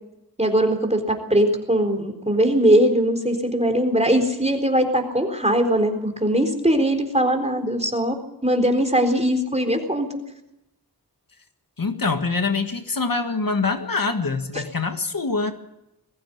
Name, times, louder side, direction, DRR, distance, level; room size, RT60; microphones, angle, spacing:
voice 1, 0.4-10.1, right 1 dB, 20° right, 5 dB, 4.1 m, -20 dB
voice 2, 11.8-15.5, left 4 dB, 65° left, 6 dB, 1.8 m, -24 dB
21.0 x 15.5 x 8.6 m, 0.88 s
wide cardioid pair, 60°, 37 cm